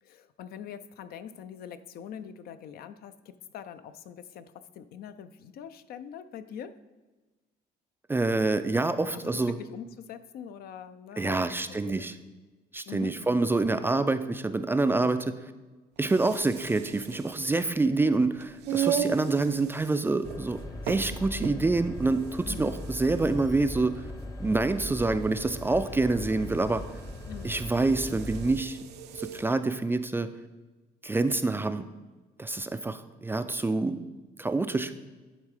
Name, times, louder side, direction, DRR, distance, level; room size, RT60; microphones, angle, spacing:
voice 1, 0.0-6.8 9.1-12.1 12.9-13.2 22.4-22.7 27.3-27.5, left 8 dB, 65° left, 11 dB, 0.5 m, -43 dB
voice 2, 8.1-9.5 11.2-12.1 12.7-15.3 16.0-20.6 20.9-24.0 24.4-26.8 27.4-28.8 29.1-30.3 31.0-31.9 32.4-34.0 34.4-34.9, right 3 dB, 15° right, 10 dB, 0.3 m, -27 dB
sound 1, 16.0-29.5, right 9 dB, 85° right, 0.6 m, -37 dB
sound 2, 20.2-28.6, left 1 dB, 20° left, 0.8 m, -39 dB
10.5 x 3.7 x 4.9 m, 1.2 s
cardioid pair, 110°, 17 cm